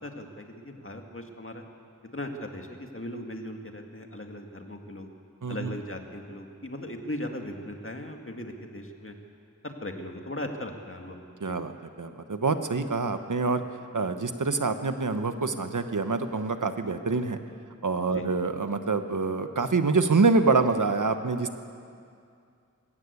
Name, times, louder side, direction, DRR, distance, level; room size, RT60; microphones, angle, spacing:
voice 1, 0.0-1.6 2.1-5.1 5.5-9.2 9.6-11.6 18.1-18.3, left 1 dB, 45° left, 3 dB, 2.1 m, -38 dB
voice 2, 5.4-5.7 11.4-11.7 12.0-13.6 13.9-17.4 17.8-21.6, right 4 dB, 85° right, 8 dB, 1.1 m, -26 dB
20.5 x 16.5 x 8.4 m, 2.4 s
wide cardioid pair, 60°, 30 cm